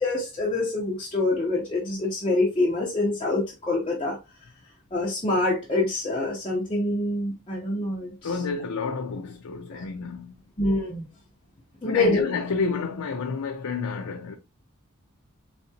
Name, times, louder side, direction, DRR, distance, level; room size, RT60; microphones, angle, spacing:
voice 1, 0.0-4.2 4.9-8.3 9.7-9.8 10.6-11.1 11.8-12.2, left 2 dB, 25° left, 0.9 m, -26 dB
voice 2, 8.2-10.3 11.8-14.4, left 4 dB, 90° left, 0.5 m, -30 dB
4.1 x 3.6 x 2.8 m
head